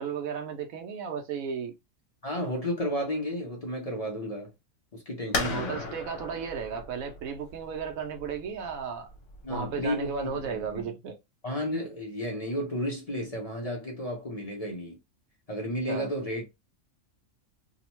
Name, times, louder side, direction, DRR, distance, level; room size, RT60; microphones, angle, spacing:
voice 1, 0.0-1.7 5.3-9.1 9.5-11.2 15.9-16.1, right 6 dB, 90° right, 1.1 m, -34 dB
voice 2, 2.2-4.5 4.9-5.9 9.4-10.9 11.4-15.0 15.5-16.6, equal, 40° left, 0.6 m, -33 dB
sound 1, 5.3-10.8, left 3 dB, 65° left, 1.1 m, -37 dB
2.9 x 2.1 x 2.9 m
omnidirectional pair, 1.4 m